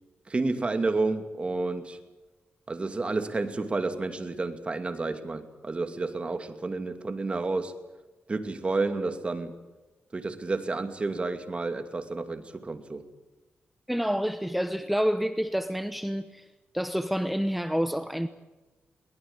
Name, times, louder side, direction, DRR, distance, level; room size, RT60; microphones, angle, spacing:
voice 1, 0.3-2.0 2.7-7.7 8.3-9.5 10.1-13.0, right 3 dB, 30° right, 2.5 m, -30 dB
voice 2, 13.9-16.4 16.7-18.3, equal, ahead, 1.0 m, -28 dB
22.0 x 19.5 x 8.9 m
cardioid pair, 105°, 4 cm